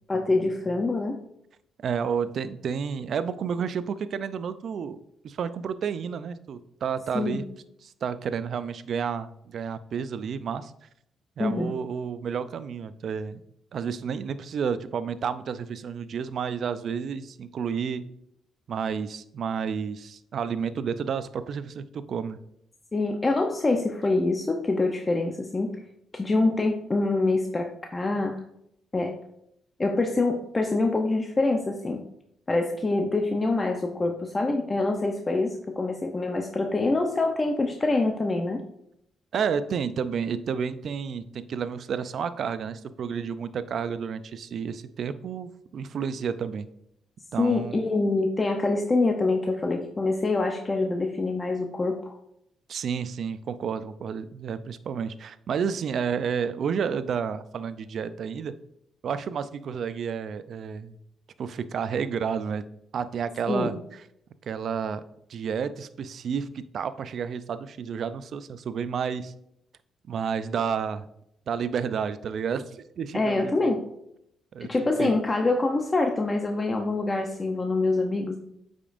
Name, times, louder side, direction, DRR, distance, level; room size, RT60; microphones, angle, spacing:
voice 1, 0.1-1.2 7.1-7.4 11.4-11.7 22.9-25.8 26.1-28.4 28.9-29.1 29.8-32.0 32.5-38.6 47.4-52.2 63.5-63.7 73.1-73.8 74.6-78.4, left 2 dB, 25° left, 3 dB, 0.7 m, -25 dB
voice 2, 1.8-7.5 7.8-10.9 11.4-13.4 13.7-18.1 18.7-22.4 39.3-46.7 47.3-47.8 52.7-58.5 59.0-61.0 61.4-62.6 62.9-64.0 64.4-65.0 65.3-69.3 70.1-71.1 71.5-73.7 74.5-74.7 75.0-75.2, right 7 dB, 60° right, 13 dB, 0.4 m, -31 dB
8.5 x 5.2 x 2.5 m, 0.75 s
cardioid pair, 90°, 0 cm